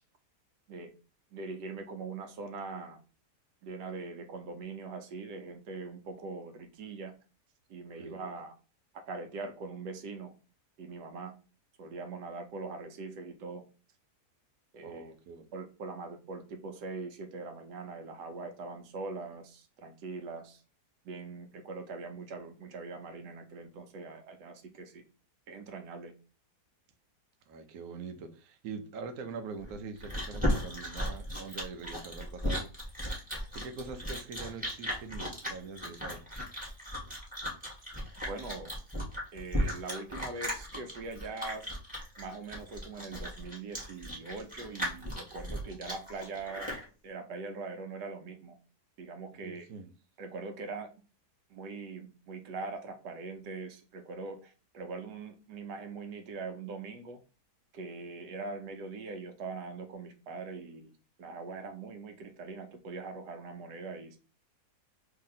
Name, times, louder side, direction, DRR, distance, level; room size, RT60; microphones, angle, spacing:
voice 1, 1.3-3.0 3.6-7.1 7.7-8.5 9.1-10.3 10.8-11.3 11.8-13.6 14.7-15.1 15.5-20.6 21.0-25.0 25.5-26.1 38.3-38.7 39.3-41.7 42.2-46.7 47.0-48.6 49.0-49.7 50.2-50.9 51.5-57.2 57.7-60.9 61.2-64.2, right 4 dB, 85° right, 1.3 m, -42 dB
voice 2, 14.8-15.5 27.5-32.7 33.5-36.2 49.4-49.9, right 4 dB, 70° right, 1.0 m, -43 dB
Chewing mastication, 29.6-46.8, equal, 5° right, 1.2 m, -36 dB
2.8 x 2.8 x 3.8 m
omnidirectional pair, 1.8 m